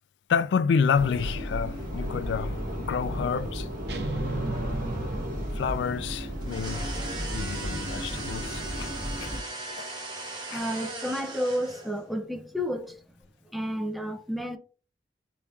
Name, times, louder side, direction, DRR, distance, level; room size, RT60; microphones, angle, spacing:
voice 1, 0.3-3.7 5.5-7.0 7.3-8.9 9.2-9.3 9.7-9.9 10.5-10.6, left 6 dB, 80° left, 0.3 m, -29 dB
sound 1, 0.9-9.4, equal, 50° right, 1.3 m, -33 dB
sound 2, 3.9-5.9, right 3 dB, 70° right, 0.6 m, -35 dB
sound 3, 6.4-12.0, right 2 dB, 25° right, 1.2 m, -38 dB
voice 2, 10.5-13.0 13.5-14.6, equal, ahead, 0.4 m, -31 dB
5.0 x 2.9 x 2.3 m
head